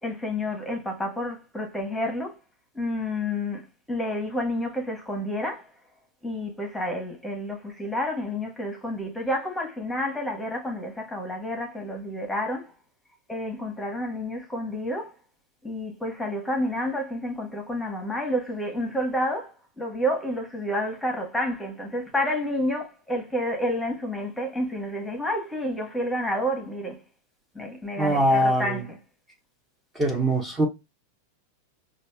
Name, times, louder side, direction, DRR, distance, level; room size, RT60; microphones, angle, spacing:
voice 1, 0.0-2.4 2.7-5.7 6.2-12.7 13.3-15.1 15.6-27.0 27.5-29.0, left 1 dB, 5° left, 1.2 m, -29 dB
voice 2, 28.0-28.8 29.9-30.7, right 1 dB, 15° right, 1.0 m, -22 dB
5.1 x 2.4 x 2.2 m
hypercardioid pair, 110°, 0 cm